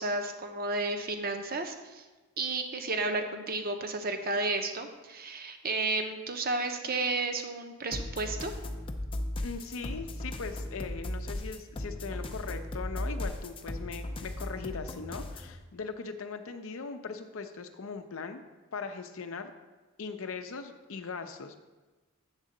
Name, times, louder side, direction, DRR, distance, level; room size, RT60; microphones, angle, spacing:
voice 1, 0.0-2.0 2.4-8.5, right 3 dB, 45° right, 5 dB, 0.7 m, -32 dB
sound 1, 7.9-15.5, left 1 dB, 25° left, 0.5 m, -37 dB
voice 2, 9.4-18.4 18.7-19.5 20.0-21.6, left 4 dB, 70° left, 7 dB, 0.6 m, -39 dB
8.1 x 3.8 x 6.4 m, 1.2 s
head